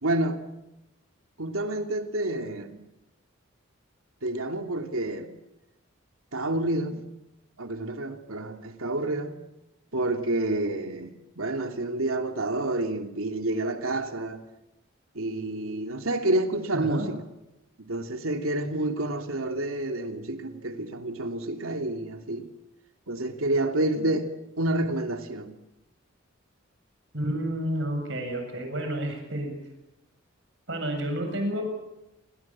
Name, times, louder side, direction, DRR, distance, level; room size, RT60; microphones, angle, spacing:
voice 1, 0.0-0.4 1.4-2.8 4.2-5.3 6.3-7.0 7.6-9.3 9.9-14.4 15.1-17.2 17.9-22.5 23.1-24.3 24.6-25.5, right 1 dB, 90° right, 2.9 m, -29 dB
voice 2, 16.7-17.1 27.1-29.5 30.7-31.6, right 1 dB, 60° right, 7.9 m, -30 dB
29.5 x 24.0 x 7.6 m
head